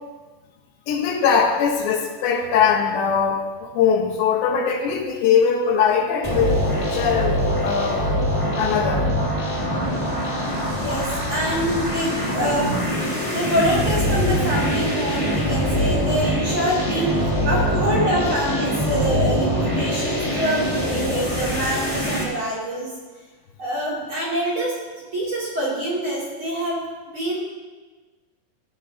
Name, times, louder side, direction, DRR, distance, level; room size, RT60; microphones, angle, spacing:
voice 1, 0.9-8.0 8.6-9.0, left 6 dB, 80° left, 1 dB, 3.4 m, -21 dB
sound 1, 6.2-22.2, equal, 20° left, 0.8 m, -23 dB
voice 2, 10.8-12.7 13.3-22.9 23.6-27.4, equal, 30° right, -7 dB, 3.3 m, -25 dB
15.0 x 14.0 x 2.9 m, 1.3 s
omnidirectional pair, 5.0 m